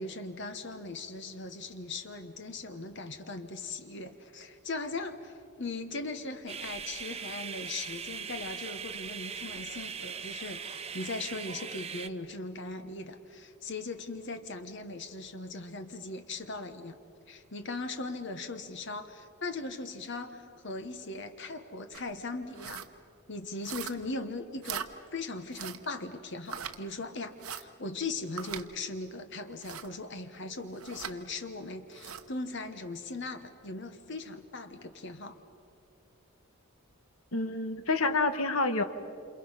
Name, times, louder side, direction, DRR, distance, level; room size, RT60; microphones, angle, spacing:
voice 1, 0.0-17.0 17.3-22.8 23.3-35.3, left 3 dB, 55° left, 8 dB, 1.3 m, -39 dB
sound 1, 6.5-12.1, right 6 dB, 30° right, 0.6 m, -40 dB
sound 2, 21.9-22.1 22.5-22.9 23.6-24.1 24.6-24.9 25.5-25.9 26.5-26.8 27.4-27.6 28.4-28.7 29.6-29.9 30.8-31.2 31.9-32.3, right 8 dB, 85° right, 1.1 m, -40 dB
voice 2, 37.3-38.8, left 3 dB, 75° left, 9 dB, 1.4 m, -28 dB
28.0 x 28.0 x 5.8 m, 2.5 s
head